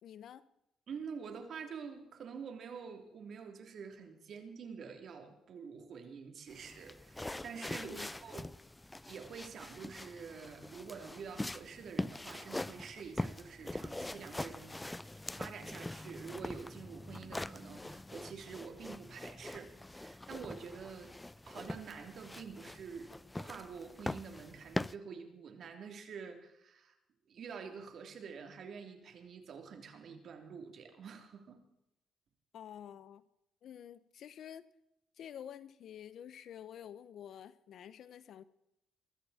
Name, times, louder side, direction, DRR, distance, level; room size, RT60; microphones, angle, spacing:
voice 1, 0.0-0.4 7.8-8.1 32.5-33.2 33.6-34.6 35.2-38.4, left 9 dB, 70° left, 16 dB, 1.0 m, -49 dB
voice 2, 0.9-8.5 9.0-14.8 15.4-21.2 21.5-23.1 23.4-26.9 27.3-31.6, right 6 dB, 60° right, 5 dB, 3.3 m, -47 dB
sound 1, 6.5-24.9, left 1 dB, 10° left, 0.5 m, -43 dB
21.5 x 15.0 x 4.4 m, 0.84 s
cardioid pair, 90°, 0 cm